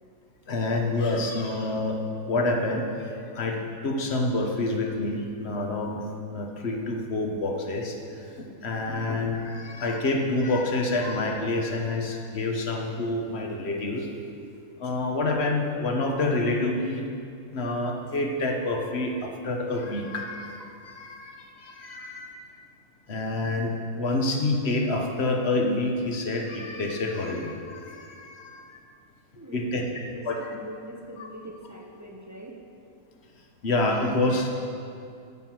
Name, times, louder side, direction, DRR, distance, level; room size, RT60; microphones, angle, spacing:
voice 1, 0.5-6.0 6.3-14.1 14.8-17.1 17.5-22.3 23.1-28.8 29.5-29.8 30.3-30.4 31.2-31.3 33.6-34.5, left 2 dB, 45° left, 2 dB, 1.3 m, -28 dB
voice 2, 29.3-32.7, right 1 dB, 20° right, 1 dB, 0.5 m, -43 dB
9.1 x 9.1 x 6.1 m, 2.4 s
omnidirectional pair, 1.6 m